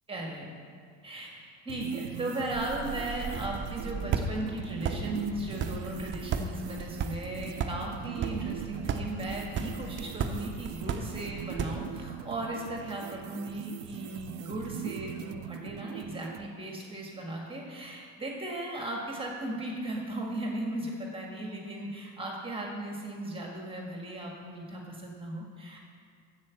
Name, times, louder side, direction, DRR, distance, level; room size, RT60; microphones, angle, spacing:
voice 1, 0.1-0.5 1.0-25.8, right 1 dB, 15° right, -1 dB, 1.7 m, -37 dB
sound 1, 1.7-16.5, right 11 dB, 85° right, 0.5 m, -42 dB
sound 2, 2.5-12.1, right 5 dB, 35° right, 0.8 m, -36 dB
9.6 x 8.0 x 7.2 m, 2.1 s
cardioid pair, 130°, 33 cm